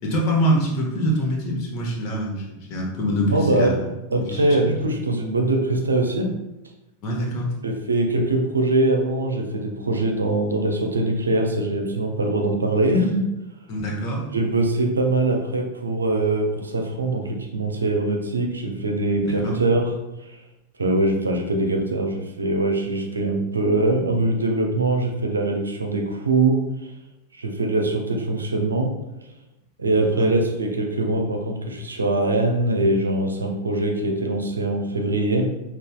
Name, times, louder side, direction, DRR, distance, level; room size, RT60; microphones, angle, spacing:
voice 1, 0.0-3.8 4.2-4.5 7.0-7.5 13.7-14.2 19.2-19.6 30.2-30.3, equal, 40° left, -2 dB, 1.0 m, -24 dB
voice 2, 3.3-3.8 4.1-6.3 7.6-13.2 14.3-19.9 20.8-26.6 27.4-28.9 29.8-35.5, right 2 dB, 75° right, 3 dB, 0.5 m, -22 dB
5.3 x 2.4 x 2.3 m, 0.95 s
figure-of-eight pair, 90°, 0 cm